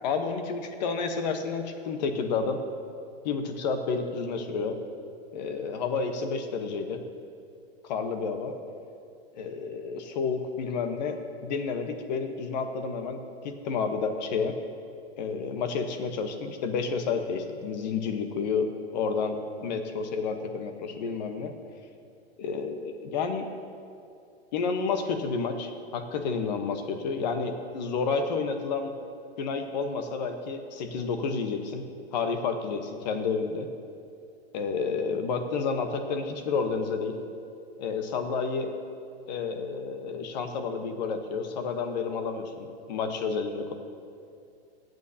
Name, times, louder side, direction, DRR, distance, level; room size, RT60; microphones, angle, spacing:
voice 1, 0.0-2.6 3.2-4.8 5.3-7.0 7.8-8.5 9.3-11.2 11.4-14.6 15.2-19.4 19.6-21.5 22.4-23.5 24.5-28.9 29.4-31.8 32.1-33.7 34.5-37.2 37.8-38.7 39.3-43.7, left 5 dB, 45° left, 6 dB, 1.1 m, -30 dB
27.0 x 9.3 x 2.8 m, 2.5 s
hypercardioid pair, 165°, 32 cm